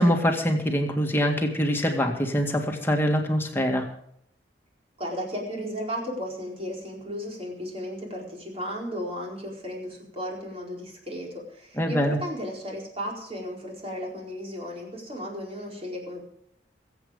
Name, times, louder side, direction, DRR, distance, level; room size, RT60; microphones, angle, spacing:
voice 1, 0.0-3.9 11.8-12.2, equal, 10° left, 2 dB, 2.1 m, -24 dB
voice 2, 5.0-16.2, equal, 35° right, -1 dB, 4.5 m, -35 dB
22.0 x 8.3 x 5.2 m, 0.71 s
head